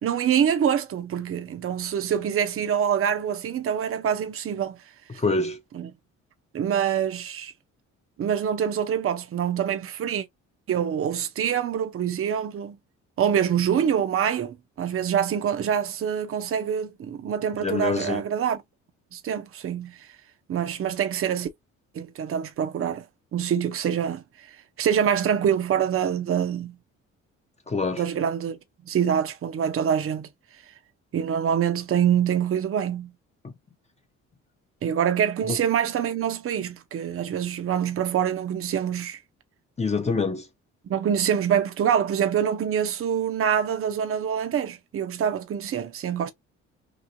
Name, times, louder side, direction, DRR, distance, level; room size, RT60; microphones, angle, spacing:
voice 1, 0.0-4.8 5.7-5.9 6.5-7.5 8.2-10.2 10.7-12.8 13.2-18.6 19.1-20.0 20.5-21.5 21.9-23.0 23.3-24.2 24.8-26.7 28.0-28.6 28.9-30.3 31.1-33.1 34.8-39.2 40.9-46.3, right 8 dB, 45° right, 0.7 m, -25 dB
voice 2, 5.1-5.6 17.6-18.2 27.7-28.0 33.4-33.5 35.5-35.6 39.8-40.4, left 3 dB, 20° left, 0.7 m, -25 dB
3.0 x 2.7 x 2.5 m
cardioid pair, 90°, 30 cm